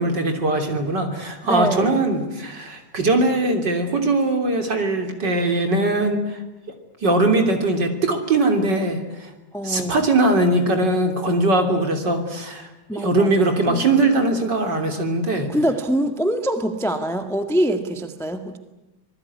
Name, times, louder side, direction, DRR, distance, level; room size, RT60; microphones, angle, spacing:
voice 1, 0.0-6.4 7.0-9.3 9.6-15.5, right 2 dB, 35° right, 5 dB, 3.5 m, -21 dB
voice 2, 1.4-2.1 9.5-10.0 12.9-13.9 15.5-18.6, right 1 dB, ahead, 7 dB, 0.8 m, -24 dB
26.5 x 20.0 x 9.7 m, 0.98 s
omnidirectional pair, 3.3 m